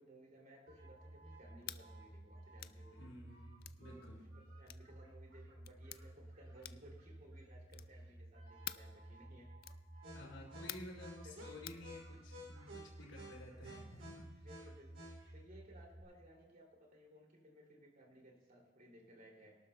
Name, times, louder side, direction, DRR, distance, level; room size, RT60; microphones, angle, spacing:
voice 1, 0.0-3.1 3.8-4.0 4.3-9.5 10.0-10.4 11.1-11.9 13.6-14.0 14.4-19.6, equal, 45° right, 0 dB, 2.7 m, -60 dB
sound 1, 0.7-16.0, right 1 dB, 75° right, 2.8 m, -54 dB
sound 2, 1.6-1.8 2.6-2.8 3.6-3.8 4.7-4.9 5.6-6.0 6.6-6.9 7.7-8.0 8.6-8.9 9.6-9.8 10.7-11.0 11.7-11.8, left 13 dB, 50° left, 0.4 m, -48 dB
voice 2, 2.9-4.2 10.1-14.5, left 1 dB, 85° left, -5 dB, 4.6 m, -53 dB
23.5 x 12.0 x 2.2 m, 1.3 s
head